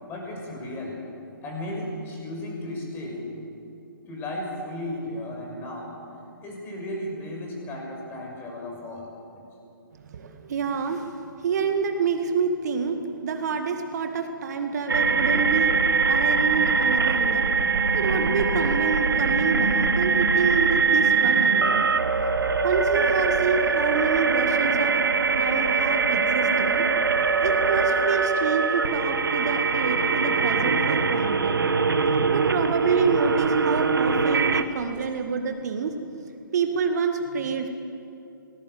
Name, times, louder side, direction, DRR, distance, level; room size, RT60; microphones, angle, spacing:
voice 1, 0.1-1.0 1.4-3.3 4.1-5.9 6.4-9.1, left 1 dB, 20° left, 0 dB, 6.7 m, -34 dB
voice 2, 10.1-15.8 16.1-17.5 17.9-21.9 22.6-25.0 25.3-26.9 27.4-31.6 32.3-36.0 36.5-37.7, right 5 dB, 50° right, 5 dB, 1.9 m, -27 dB
sound 1, 14.9-34.6, right 5 dB, 75° right, 1.5 m, -22 dB
27.5 x 20.0 x 7.9 m, 2.8 s
figure-of-eight pair, 140°, 12 cm